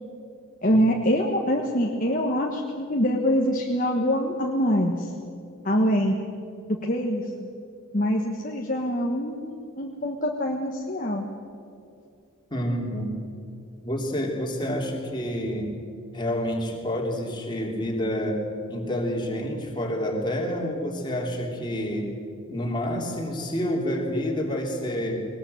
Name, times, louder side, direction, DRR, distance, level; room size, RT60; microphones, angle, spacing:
voice 1, 0.6-5.1 5.6-6.2 6.8-7.5 7.9-11.3, equal, 35° left, 1 dB, 1.4 m, -24 dB
voice 2, 12.5-13.1 13.8-15.8 16.1-22.1 22.5-25.3, equal, 20° left, 0 dB, 3.2 m, -28 dB
20.0 x 20.0 x 8.0 m, 2.6 s
head